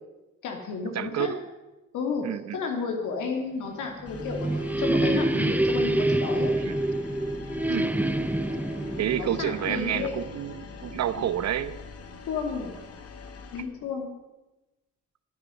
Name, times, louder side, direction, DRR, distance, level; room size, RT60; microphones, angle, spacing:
voice 1, 0.4-1.3 1.9-2.3 2.5-6.5 9.2-10.2 11.2-11.3 12.3-12.7 13.5-14.1, left 5 dB, 80° left, 2 dB, 2.8 m, -32 dB
voice 2, 0.9-1.4 2.2-2.6 6.6-6.8 7.7-7.9 9.0-11.8, right 10 dB, 60° right, 15 dB, 1.0 m, -29 dB
sound 1, 3.8-10.5, right 1 dB, 5° right, 0.7 m, -27 dB
sound 2, 4.0-13.6, left 5 dB, 50° left, 1.9 m, -43 dB
10.5 x 9.8 x 9.7 m, 1.0 s
cardioid pair, 90°, 30 cm